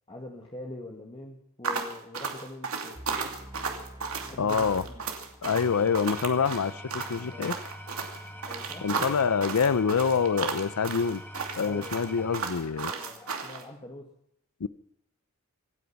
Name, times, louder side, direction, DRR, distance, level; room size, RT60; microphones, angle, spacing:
voice 1, 0.1-3.1 4.3-5.0 7.2-7.5 8.4-9.5 11.6-12.0 12.8-14.1, left 1 dB, 25° left, 1.8 m, -44 dB
sound 1, 1.6-13.6, right 5 dB, 75° right, 2.7 m, -34 dB
sound 2, 2.9-5.9, equal, 20° right, 1.3 m, -47 dB
voice 2, 4.4-4.8 5.4-7.6 8.8-11.2 11.6-12.9 14.6-14.7, left 6 dB, 90° left, 0.5 m, -26 dB
Engine / Tools, 5.3-13.7, equal, 10° left, 2.2 m, -44 dB
26.0 x 9.4 x 5.8 m
head